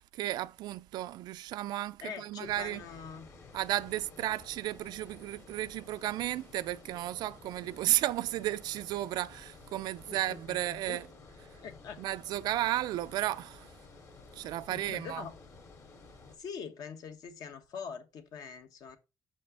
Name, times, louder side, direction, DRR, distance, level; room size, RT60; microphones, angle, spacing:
voice 1, 0.0-2.8 3.5-11.0 12.0-13.7 14.3-15.2, right 14 dB, 80° right, 0.4 m, -33 dB
voice 2, 2.0-3.3 10.1-11.0 11.6-12.0 14.7-15.3 16.4-19.0, left 6 dB, 65° left, 1.2 m, -43 dB
Water, 2.4-16.4, left 4 dB, 45° left, 2.1 m, -53 dB
6.1 x 5.5 x 4.9 m
cardioid pair, 160°, 7 cm